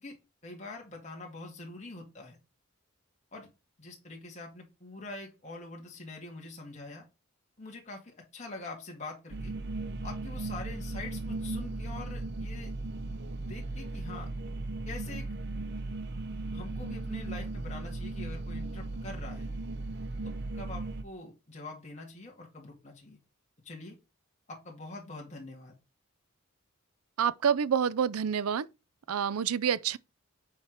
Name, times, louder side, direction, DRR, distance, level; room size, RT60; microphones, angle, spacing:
voice 1, 0.4-2.4 3.3-3.5 3.8-7.1 7.6-9.5 10.0-12.7 13.4-14.3 14.9-15.3 16.5-19.5 20.2-23.2 23.6-24.0 24.5-25.7, left 2 dB, 30° left, 2.1 m, -44 dB
sound 1, 9.3-21.0, right 2 dB, 50° right, 0.7 m, -37 dB
voice 2, 27.2-28.7 29.1-30.0, right 8 dB, 85° right, 0.4 m, -27 dB
7.2 x 4.5 x 5.0 m
head